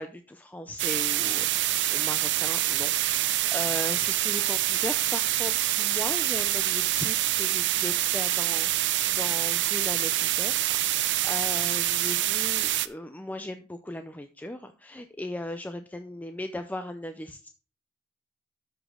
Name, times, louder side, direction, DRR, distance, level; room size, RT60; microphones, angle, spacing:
voice 1, 0.0-17.5, left 1 dB, 10° left, 8 dB, 0.4 m, -38 dB
sound 1, 0.8-12.9, right 14 dB, 60° right, 0.5 m, -26 dB
13.0 x 5.1 x 3.7 m, 0.37 s
head